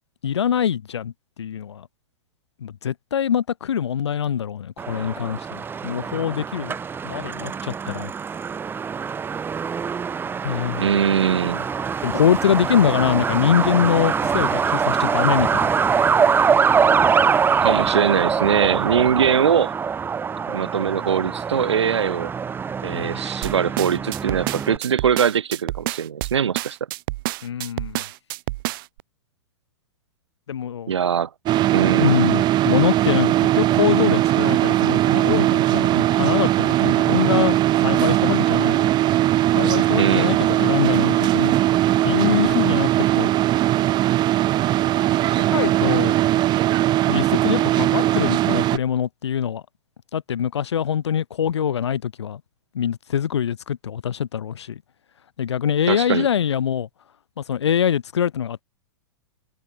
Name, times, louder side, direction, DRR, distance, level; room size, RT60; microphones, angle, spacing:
voice 1, 0.2-1.1 1.4-1.9 2.6-6.8 7.0-8.1 10.4-10.9 12.0-16.1 22.9-23.2 27.4-28.0 30.5-30.9 32.0-38.9 39.6-41.5 42.0-42.9 43.1-43.3 44.9-46.2 47.1-49.6 50.1-52.4 52.7-54.8 55.4-56.9 57.4-58.6, left 8 dB, 70° left, 2.3 m, -24 dB
Truck, 4.8-24.8, right 6 dB, 15° right, 0.8 m, -23 dB
voice 2, 10.8-11.6 17.6-19.7 20.5-22.3 22.8-26.8 30.9-31.3 31.7-32.2 40.0-40.3 55.9-56.3, right 7 dB, 75° right, 1.3 m, -21 dB
sound 1, 23.4-29.0, right 21 dB, 50° right, 1.1 m, -29 dB
sound 2, 31.5-48.8, right 14 dB, 30° right, 1.1 m, -19 dB
figure-of-eight pair, 105°, 15 cm